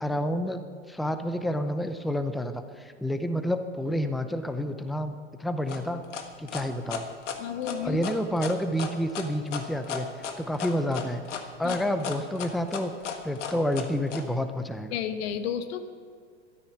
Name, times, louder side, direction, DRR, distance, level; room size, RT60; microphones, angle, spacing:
voice 1, 0.0-6.0 6.4-7.1 7.8-10.1 10.4-11.2 11.6-12.9 13.2-15.0, equal, ahead, 9 dB, 0.6 m, -29 dB
sound 1, 5.7-14.2, left 7 dB, 75° left, 1.6 m, -35 dB
voice 2, 7.4-8.0 11.6-11.7 14.9-15.9, left 8 dB, 55° left, 9 dB, 1.4 m, -31 dB
13.0 x 13.0 x 5.8 m, 2.1 s
hypercardioid pair, 110°, 36 cm